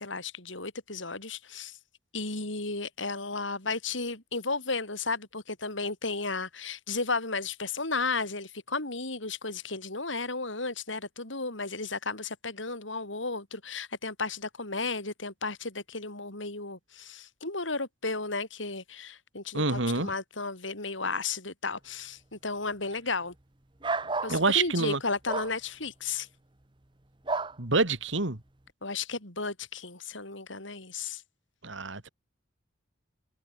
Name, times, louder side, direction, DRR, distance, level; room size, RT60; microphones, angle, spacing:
voice 1, 0.0-1.8 2.1-23.3 24.2-26.3 28.8-31.2, left 3 dB, 90° left, 6.8 m, -34 dB
voice 2, 19.5-20.1 24.3-25.0 27.6-28.4 31.6-32.1, right 3 dB, 85° right, 2.5 m, -27 dB
sound 1, 23.8-24.4 25.3-25.5 27.3-27.6, right 3 dB, 25° right, 1.0 m, -30 dB
head